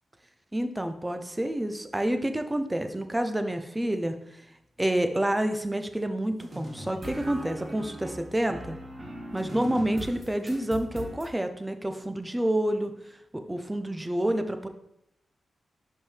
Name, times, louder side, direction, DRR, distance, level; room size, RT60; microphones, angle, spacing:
voice 1, 0.5-4.2 4.8-8.8 9.3-12.9 13.3-14.7, right 1 dB, 15° right, 8 dB, 0.6 m, -28 dB
sound 1, 6.4-11.3, equal, 40° right, 1.5 m, -39 dB
5.5 x 5.1 x 3.4 m, 0.81 s
cardioid pair, 60°, 0 cm